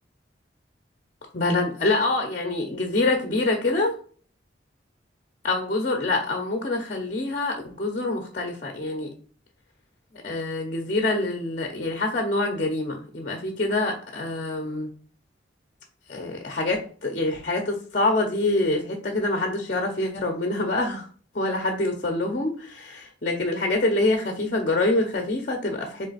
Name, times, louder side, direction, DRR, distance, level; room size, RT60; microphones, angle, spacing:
voice 1, 1.3-3.9 5.4-9.1 10.2-14.9 16.1-21.1 21.3-26.1, left 2 dB, 40° left, 3 dB, 0.6 m, -25 dB
3.7 x 3.3 x 4.0 m, 0.43 s
head